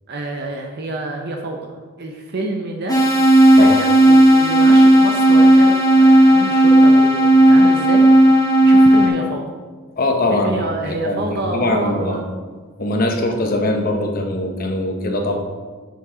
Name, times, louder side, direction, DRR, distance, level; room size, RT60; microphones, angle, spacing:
voice 1, 0.1-1.6 2.0-3.0 3.5-8.1 8.6-9.5 10.3-12.2, right 2 dB, 45° right, 2 dB, 0.6 m, -27 dB
sound 1, 2.9-9.1, right 1 dB, 15° left, 1.2 m, -11 dB
voice 2, 10.0-12.2 12.8-15.4, left 2 dB, 40° left, 3 dB, 0.9 m, -21 dB
7.0 x 6.2 x 3.8 m, 1.4 s
head